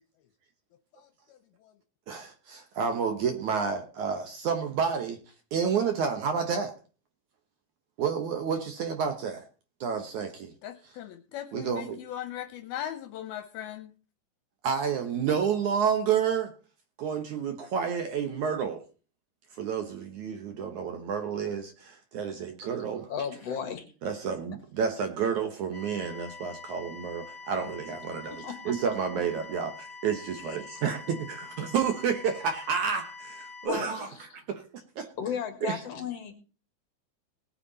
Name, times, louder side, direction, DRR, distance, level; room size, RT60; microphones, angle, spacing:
voice 1, 0.9-1.7 10.6-13.9, left 11 dB, 75° left, 8 dB, 2.6 m, -39 dB
voice 2, 2.1-5.2 5.5-6.7 8.0-9.4 9.8-10.5 11.5-12.0 14.6-16.5 17.0-18.8 19.6-23.1 24.0-34.1 34.3-35.1 35.6-35.8, right 6 dB, 65° right, 6 dB, 2.1 m, -30 dB
voice 3, 23.1-23.9 28.4-28.7 30.5-30.8 33.6-34.2 35.2-36.3, left 7 dB, 50° left, 8 dB, 2.2 m, -35 dB
sound 1, 25.7-33.7, left 4 dB, 20° left, 2.7 m, -45 dB
19.5 x 8.4 x 4.1 m, 0.36 s
omnidirectional pair, 4.6 m